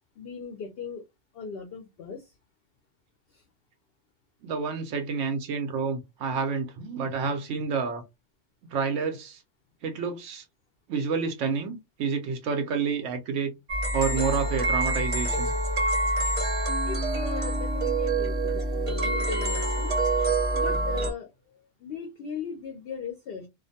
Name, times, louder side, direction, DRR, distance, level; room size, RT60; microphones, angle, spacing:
voice 1, 0.2-1.0 1.3-2.3 3.3-3.4 16.8-19.9 20.5-23.5, left 6 dB, 60° left, 0.7 m, -39 dB
voice 2, 4.4-8.0 8.7-9.4 9.8-10.4 10.9-13.5 13.9-15.5, right 5 dB, 80° right, 0.9 m, -29 dB
sound 1, 13.7-21.1, right 2 dB, 35° right, 0.6 m, -26 dB
2.4 x 2.1 x 2.7 m
omnidirectional pair, 1.2 m